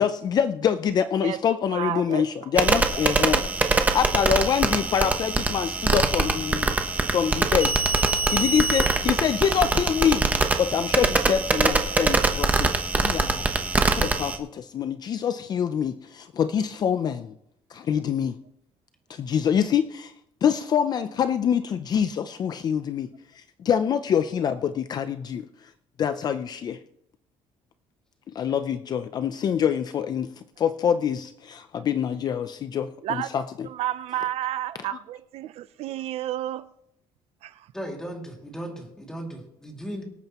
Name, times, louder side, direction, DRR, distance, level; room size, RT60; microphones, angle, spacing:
voice 1, 0.0-6.7 7.1-7.8 8.3-10.3 10.6-13.4 13.9-17.3 17.7-18.4 19.1-20.1 20.4-23.1 23.3-25.5 26.0-26.8 28.3-30.3 30.6-33.7 34.9-35.0, left 8 dB, 35° left, 0.5 m, -25 dB
voice 2, 1.7-2.3 33.0-33.3 33.6-36.7 37.4-37.7, right 13 dB, 60° right, 0.5 m, -31 dB
sound 1, 2.6-14.4, right 3 dB, 15° right, 0.9 m, -23 dB
voice 3, 37.7-40.0, equal, 5° left, 2.4 m, -36 dB
24.5 x 8.9 x 3.0 m
cardioid pair, 160°, 12 cm